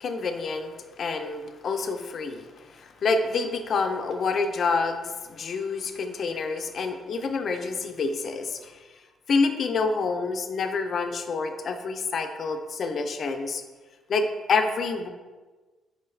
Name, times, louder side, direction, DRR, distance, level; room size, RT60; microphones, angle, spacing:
voice 1, 0.0-8.8 9.3-13.6 14.1-15.1, left 4 dB, 55° left, 6 dB, 0.4 m, -28 dB
4.7 x 2.3 x 3.2 m, 1.3 s
cardioid pair, 90°, 0 cm